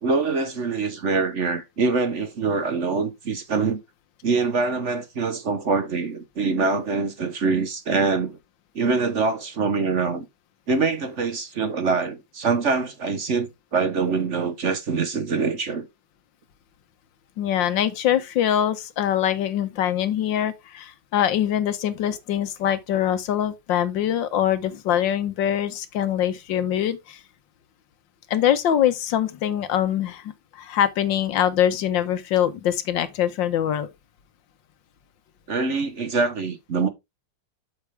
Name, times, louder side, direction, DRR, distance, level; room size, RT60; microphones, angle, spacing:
voice 1, 0.0-3.8 4.2-8.4 8.7-10.2 10.7-15.9 35.5-36.9, right 4 dB, 45° right, 1.1 m, -24 dB
voice 2, 17.4-27.2 28.3-33.9, left 10 dB, 90° left, 1.7 m, -23 dB
8.2 x 6.6 x 3.3 m
omnidirectional pair, 2.0 m